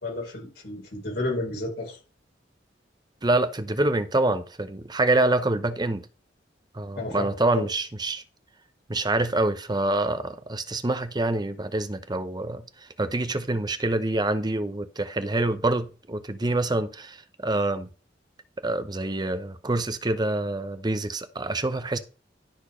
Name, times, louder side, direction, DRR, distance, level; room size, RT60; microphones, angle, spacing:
voice 1, 0.0-2.0 6.9-7.7, left 2 dB, 65° left, 4.6 m, -32 dB
voice 2, 3.2-6.1 6.7-8.2 8.9-12.7 13.0-17.9 18.6-22.0, right 2 dB, 25° right, 0.8 m, -26 dB
12.0 x 4.5 x 5.0 m
head